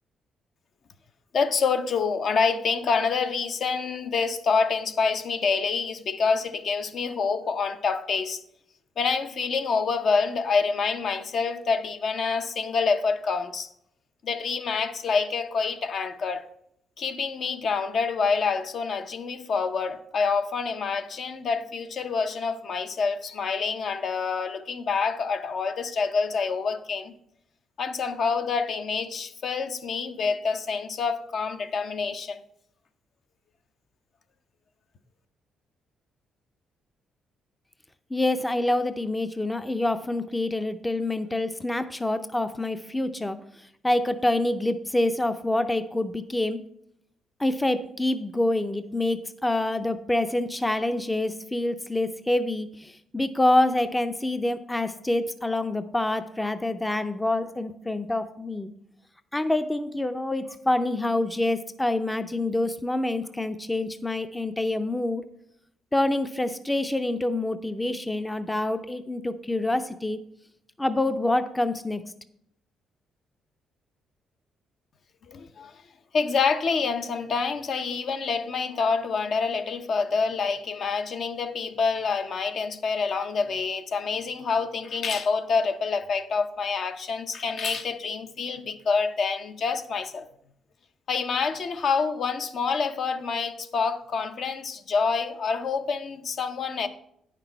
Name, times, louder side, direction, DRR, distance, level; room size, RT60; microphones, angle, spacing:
voice 1, 1.3-8.4 9.0-13.7 14.2-16.5 17.0-27.1 27.8-32.4 75.3-75.8 76.1-90.3 91.1-96.9, left 5 dB, 60° left, 0.6 m, -27 dB
voice 2, 38.1-43.4 43.8-46.6 47.4-58.7 59.3-65.2 65.9-70.2 70.8-72.0, left 1 dB, 10° left, 0.4 m, -26 dB
9.1 x 6.0 x 4.4 m
cardioid pair, 90°, 0 cm